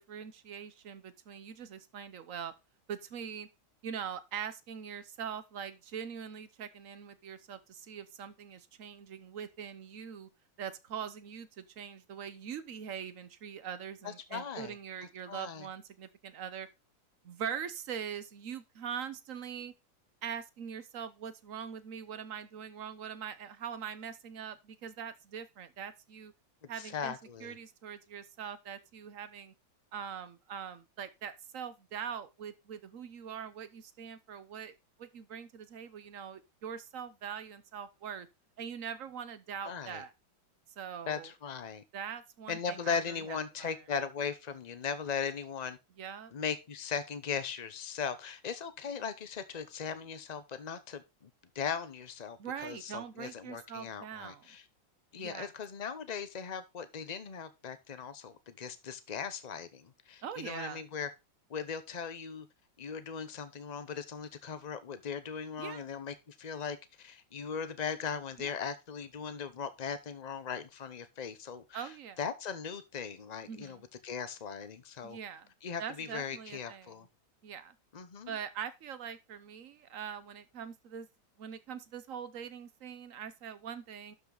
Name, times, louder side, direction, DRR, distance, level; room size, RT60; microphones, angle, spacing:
voice 1, 0.0-2.5 2.9-3.5 3.8-10.3 10.6-16.7 17.2-19.7 20.2-26.3 26.7-27.1 27.4-29.5 29.9-38.3 38.6-40.1 40.8-41.3 41.9-43.8 46.0-46.3 52.4-54.5 55.2-55.5 60.2-60.8 65.6-65.8 68.4-68.5 71.7-72.2 73.5-73.8 75.0-75.5 75.8-76.9 77.4-77.8 78.3-81.1 81.4-84.1, right 8 dB, 55° right, 1.0 m, -42 dB
voice 2, 14.0-14.8 15.3-15.7 26.8-27.6 39.6-40.0 41.1-41.8 42.5-45.8 46.3-51.3 51.5-54.6 55.1-61.1 61.5-62.5 62.8-71.9 72.2-75.2 75.6-77.1 77.9-78.4, left 6 dB, 55° left, 0.4 m, -38 dB
12.0 x 5.6 x 3.9 m
omnidirectional pair, 2.1 m